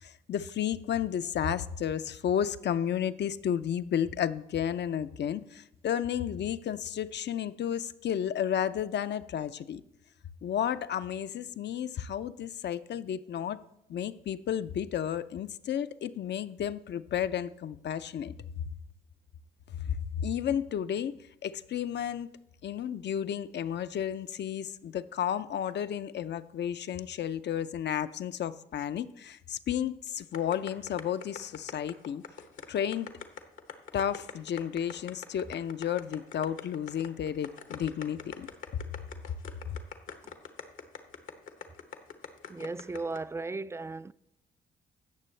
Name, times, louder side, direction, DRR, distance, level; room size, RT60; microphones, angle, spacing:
voice 1, 0.0-9.8 10.4-13.6 13.9-18.3 19.8-21.1 21.4-22.3 22.6-32.2 32.7-33.1 33.9-38.5, left 9 dB, 60° left, 0.6 m, -32 dB
sound 1, 30.3-43.2, left 8 dB, 75° left, 1.1 m, -43 dB
voice 2, 42.5-44.1, right 3 dB, 15° right, 0.3 m, -36 dB
17.0 x 6.7 x 3.3 m
supercardioid pair, 50°, 21 cm